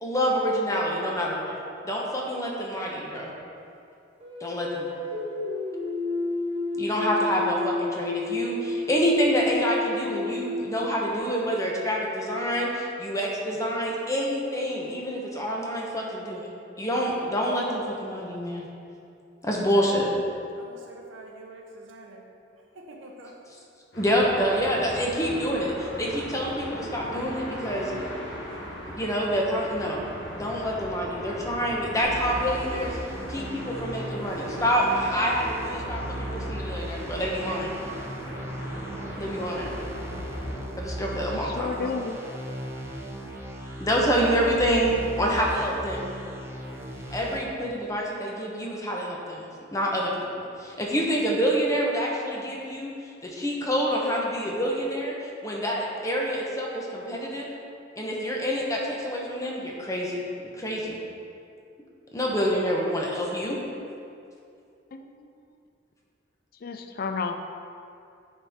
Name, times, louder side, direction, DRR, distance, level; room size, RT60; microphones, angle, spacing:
voice 1, 0.0-1.6 1.8-3.3 4.4-4.9 6.8-16.5 16.8-18.6 19.4-20.1 24.0-27.9 28.9-30.0 30.3-33.0 33.3-37.7 39.2-39.7 40.8-41.9 43.8-46.0 47.1-49.4 49.7-50.1 50.4-57.5 58.0-60.2 60.6-61.0 62.1-63.6, equal, 15° left, -2 dB, 0.9 m, -27 dB
sound 1, 4.2-11.5, left 2 dB, 35° right, 1.4 m, -31 dB
voice 2, 19.4-20.2 20.6-22.2 22.7-23.3, right 1 dB, 85° right, 0 dB, 0.9 m, -45 dB
sound 2, 23.9-40.6, equal, 70° left, 1.6 m, -39 dB
sound 3, 32.0-47.4, equal, 15° right, 0.7 m, -37 dB
voice 3, 41.3-42.1 64.9-65.0 66.6-67.3, left 5 dB, 50° left, 6 dB, 0.4 m, -31 dB
9.2 x 4.3 x 3.6 m, 2.5 s
head